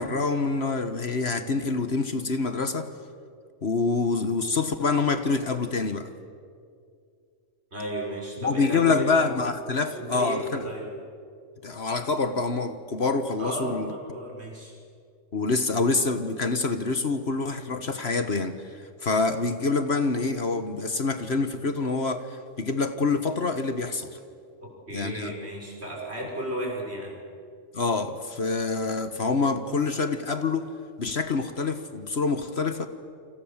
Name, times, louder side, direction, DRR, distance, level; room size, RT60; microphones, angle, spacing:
voice 1, 0.0-2.9 3.6-6.1 8.4-10.6 11.6-13.9 15.3-24.2 24.9-25.3 27.7-30.7 31.0-32.9, left 4 dB, 55° left, 9 dB, 1.6 m, -26 dB
voice 2, 7.7-9.2 9.9-10.9 13.4-14.7 24.6-27.1, right 1 dB, 55° right, -1 dB, 6.3 m, -34 dB
30.0 x 26.0 x 7.4 m, 2.3 s
omnidirectional pair, 1.3 m